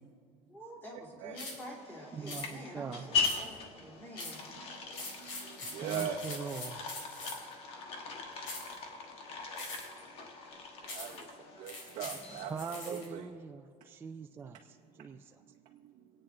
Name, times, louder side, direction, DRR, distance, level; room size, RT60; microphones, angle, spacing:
voice 1, 0.5-4.5, equal, 10° left, -3 dB, 2.7 m, -48 dB
voice 2, 1.2-1.5 3.4-3.5 3.8-4.2 4.5-6.4 9.8-10.1 10.8-12.5 12.9-13.3 14.5-14.6 15.0-15.2 15.5-16.1, right 8 dB, 45° right, 0 dB, 0.8 m, -43 dB
sound 1, 1.3-1.6 2.3-2.5 3.2-3.6 4.1-4.4 4.9-7.5 8.4-8.7 9.6-10.0 10.9-11.2 11.7-13.0, left 2 dB, 75° left, 4.0 m, -43 dB
sound 2, 1.6-12.8, left 5 dB, 35° left, 1.3 m, -40 dB
voice 3, 2.1-3.2 5.8-6.8 12.5-15.4, right 5 dB, 15° right, 4 dB, 0.3 m, -42 dB
25.0 x 8.8 x 3.8 m, 2.2 s
cardioid pair, 165°, 16 cm